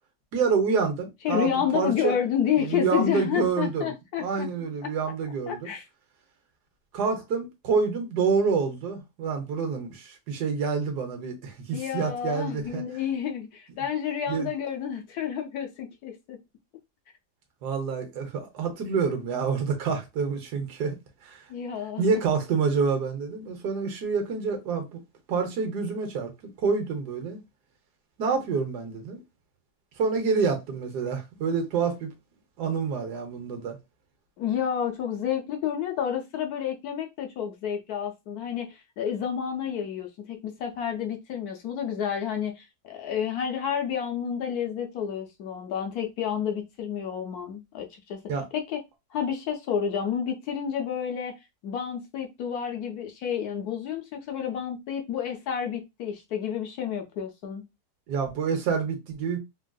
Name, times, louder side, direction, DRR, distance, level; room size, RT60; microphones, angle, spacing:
voice 1, 0.3-2.2 2.6-3.9 4.2-5.7 6.9-12.8 14.3-14.5 17.6-20.9 21.2-21.4 22.0-25.0 25.3-26.3 26.6-27.4 28.2-29.2 30.0-32.1 32.6-33.8 48.3-48.5 58.1-59.4, right 5 dB, 75° right, 1.4 m, -27 dB
voice 2, 1.2-4.5 4.8-4.9 5.5-5.8 11.7-16.4 21.5-22.2 34.4-48.2 48.5-48.8 49.1-51.3 51.6-57.6, left 8 dB, 70° left, 1.1 m, -30 dB
3.4 x 2.4 x 2.2 m
omnidirectional pair, 1.8 m